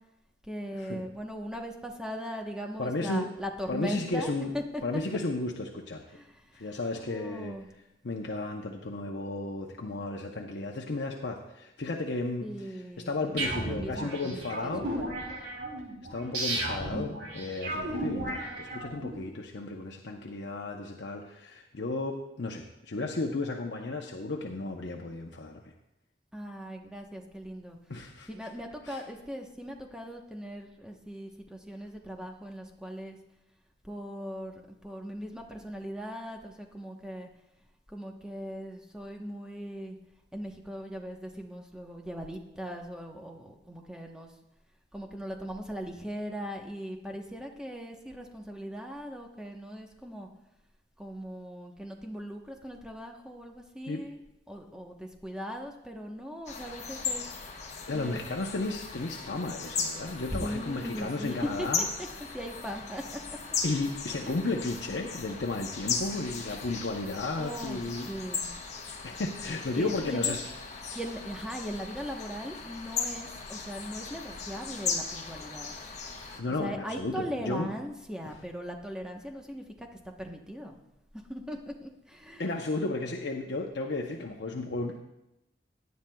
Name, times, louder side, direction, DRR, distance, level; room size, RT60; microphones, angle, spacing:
voice 1, 0.4-5.0 6.1-7.7 12.4-15.1 26.3-27.8 28.3-33.2 33.8-37.3 37.9-40.0 40.3-44.3 44.9-50.3 51.0-54.2 54.5-57.2 57.9-58.2 60.3-63.4 64.2-64.5 67.4-68.6 69.4-70.4 70.9-75.7 76.5-79.9 80.2-80.8 81.3-82.6, equal, 5° right, 2 dB, 1.0 m, -39 dB
voice 2, 2.8-3.3 3.7-4.5 4.8-6.2 6.5-7.5 8.0-12.7 13.1-14.9 16.1-25.7 27.9-28.3 28.8-29.0 53.9-54.0 57.9-61.9 63.6-68.1 69.0-70.4 76.4-77.7 78.2-78.3 82.4-85.0, left 2 dB, 70° left, 1 dB, 0.8 m, -34 dB
sound 1, 13.4-19.2, right 1 dB, 65° right, 3.1 m, -34 dB
sound 2, 56.5-76.4, left 5 dB, 40° left, 1.3 m, -37 dB
17.0 x 10.5 x 2.3 m, 0.91 s
head